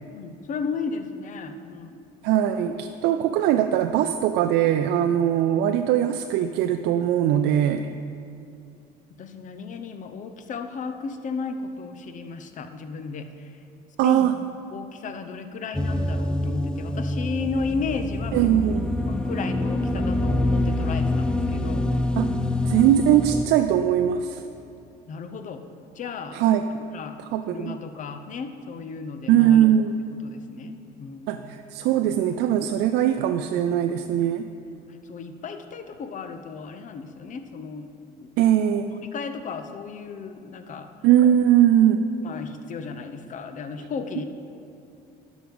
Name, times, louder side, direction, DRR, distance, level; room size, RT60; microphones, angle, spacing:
voice 1, 0.1-2.0 9.2-13.6 14.0-14.3 14.7-18.5 19.0-21.9 25.1-25.6 25.9-26.4 26.9-27.2 27.5-29.6 30.2-31.5 34.1-37.9 38.2-38.3 38.9-40.9 42.2-44.2, left 5 dB, 50° left, 8 dB, 0.8 m, -34 dB
voice 2, 2.2-7.9 14.0-14.3 18.3-18.9 22.2-22.3 22.6-24.4 26.3-26.6 27.3-27.8 29.3-29.9 31.3-34.5 38.4-38.9 41.0-42.0, right 10 dB, 90° right, 7 dB, 0.4 m, -20 dB
sound 1, 15.7-23.5, left 1 dB, 5° left, 0.5 m, -25 dB
11.5 x 6.2 x 5.4 m, 2.5 s
cardioid pair, 110°, 17 cm